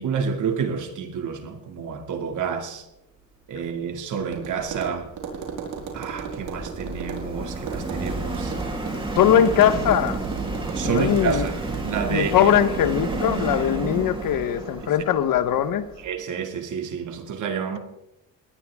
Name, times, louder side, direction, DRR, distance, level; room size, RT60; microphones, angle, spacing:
voice 1, 0.0-2.8 3.5-5.1 5.9-8.5 10.7-12.5 16.0-17.8, right 6 dB, 55° right, 2.6 m, -29 dB
Tap, 4.2-13.5, right 6 dB, 80° right, 4.7 m, -37 dB
Subway metro underground, 4.8-16.1, right 2 dB, 15° right, 3.4 m, -31 dB
voice 2, 9.1-10.2 10.8-11.5 12.1-15.8, left 10 dB, 65° left, 1.4 m, -20 dB
20.5 x 19.0 x 3.7 m
cardioid pair, 160°, 36 cm